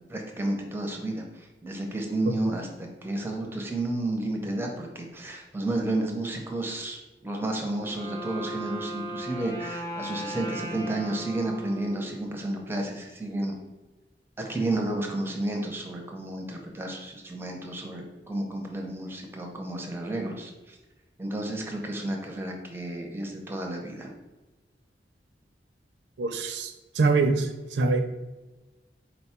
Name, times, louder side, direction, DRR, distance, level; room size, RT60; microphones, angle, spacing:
voice 1, 0.1-13.6 14.4-20.8 21.2-24.1, right 1 dB, 15° right, 1 dB, 0.6 m, -32 dB
Wind instrument woodwind instrument, 7.7-12.6, right 1 dB, 20° left, 0.8 m, -37 dB
voice 2, 26.2-28.0, right 3 dB, 90° right, 6 dB, 0.5 m, -24 dB
4.2 x 2.2 x 4.2 m, 1.1 s
head